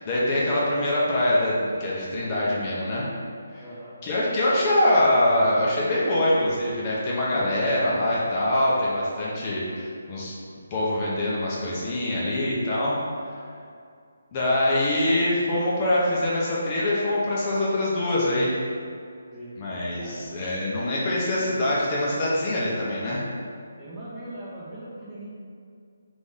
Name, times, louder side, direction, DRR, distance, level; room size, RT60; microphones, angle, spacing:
voice 1, 0.0-3.1 3.5-3.6 4.0-10.3 10.7-13.0 14.3-18.5 19.6-23.2, left 1 dB, 25° left, -6 dB, 0.7 m, -24 dB
voice 2, 3.6-4.0 7.2-8.2 19.3-19.5 19.9-20.2 20.6-21.0 23.8-25.3, right 1 dB, 15° right, -9 dB, 0.8 m, -40 dB
3.9 x 3.0 x 3.6 m, 2.3 s
figure-of-eight pair, 145°, 0 cm